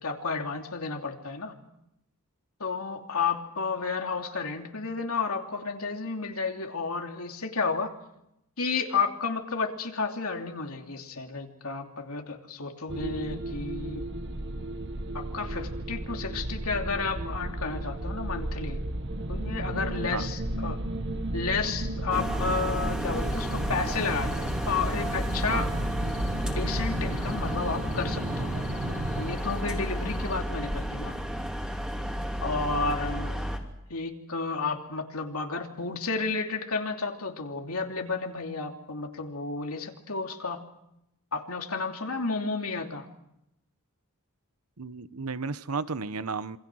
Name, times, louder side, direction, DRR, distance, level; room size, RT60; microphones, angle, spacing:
voice 1, 0.0-1.6 2.6-7.9 8.6-14.0 15.1-18.8 19.3-20.8 21.3-25.7 26.4-31.2 32.4-33.5 33.9-40.6 41.3-43.0, left 4 dB, 70° left, 3 dB, 3.0 m, -32 dB
sound 1, 12.9-29.4, right 1 dB, 55° right, 1.7 m, -33 dB
sound 2, 22.1-33.6, equal, 5° right, 3.1 m, -32 dB
sound 3, 23.1-30.4, left 2 dB, 35° left, 2.7 m, -45 dB
voice 2, 44.8-46.6, right 4 dB, 75° right, 14 dB, 1.0 m, -33 dB
27.5 x 25.5 x 6.3 m, 0.84 s
head